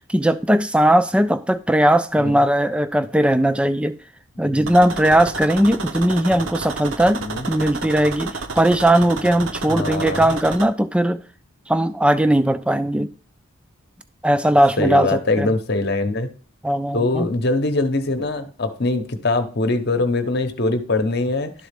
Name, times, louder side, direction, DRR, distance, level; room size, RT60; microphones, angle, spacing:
voice 1, 0.1-3.9 4.4-11.2 11.7-13.1 14.2-15.5 16.6-17.3, right 1 dB, 5° right, 0.3 m, -18 dB
voice 2, 4.4-4.7 7.2-7.5 9.7-10.3 14.8-16.3 16.9-21.5, left 2 dB, 50° left, 0.9 m, -22 dB
sound 1, 4.7-10.7, right 4 dB, 65° right, 0.7 m, -31 dB
11.5 x 4.0 x 3.4 m
head